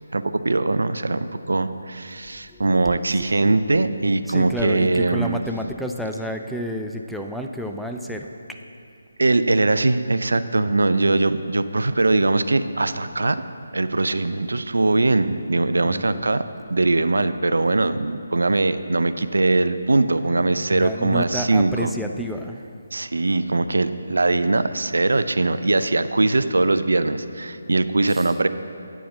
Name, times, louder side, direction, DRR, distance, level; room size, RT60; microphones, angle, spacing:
voice 1, 0.1-5.4 9.2-13.4 13.7-16.4 16.7-21.9 22.9-28.5, right 2 dB, 70° right, 12 dB, 0.4 m, -21 dB
voice 2, 2.5-3.4 4.2-8.6 10.5-11.0 15.8-16.3 20.7-22.7 28.1-28.4, equal, ahead, 2 dB, 0.3 m, -31 dB
8.9 x 4.7 x 7.0 m, 2.6 s
figure-of-eight pair, 150°, 0 cm